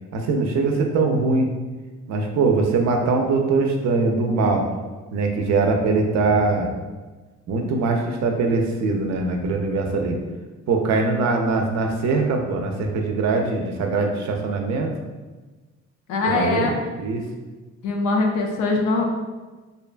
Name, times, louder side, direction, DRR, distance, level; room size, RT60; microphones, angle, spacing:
voice 1, 0.1-1.5 2.1-4.7 5.1-6.7 7.5-10.2 10.7-14.9 16.2-16.7 17.0-17.2, right 3 dB, 65° right, 3 dB, 0.5 m, -22 dB
voice 2, 16.1-16.7 17.8-19.0, left 3 dB, 85° left, 2 dB, 0.5 m, -22 dB
2.7 x 2.2 x 2.4 m, 1.3 s
cardioid pair, 90°, 30 cm